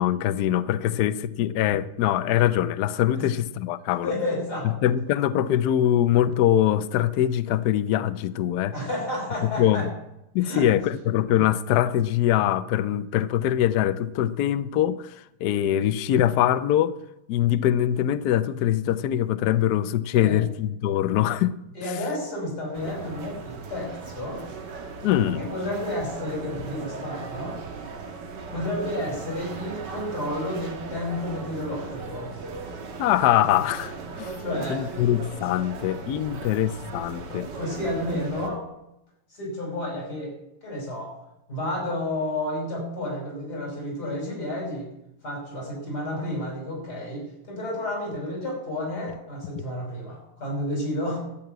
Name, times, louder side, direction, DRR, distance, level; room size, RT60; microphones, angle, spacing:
voice 1, 0.0-4.1 4.6-8.7 9.4-9.9 10.3-15.2 15.4-17.0 17.3-21.6 25.0-25.4 33.0-34.4 34.7-37.5, left 11 dB, 85° left, 14 dB, 0.8 m, -23 dB
voice 2, 4.0-4.8 8.7-9.9 10.4-10.7 20.2-20.4 21.7-24.4 25.3-27.6 28.5-32.3 34.4-34.9 37.5-38.6 39.3-40.3 40.6-41.1 41.5-44.9 45.2-51.2, left 1 dB, 45° left, -1 dB, 6.0 m, -31 dB
sound 1, 22.7-38.5, right 4 dB, 55° right, 1.9 m, -38 dB
12.5 x 6.9 x 9.0 m, 0.86 s
omnidirectional pair, 2.4 m